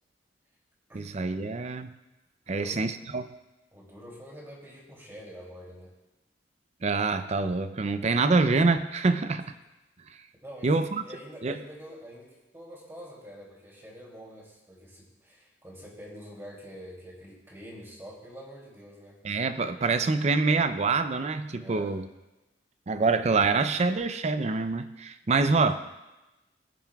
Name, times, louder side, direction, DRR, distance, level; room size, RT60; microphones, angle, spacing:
voice 1, 0.9-1.9 2.5-3.3 6.8-9.5 10.6-11.0 11.4-11.6 19.2-22.1 22.9-25.8, right 3 dB, 35° right, 10 dB, 0.5 m, -25 dB
voice 2, 2.5-2.8 3.7-5.9 10.4-19.2 21.6-22.0, equal, 15° right, -3 dB, 2.7 m, -46 dB
20.5 x 7.2 x 2.3 m, 1.0 s
head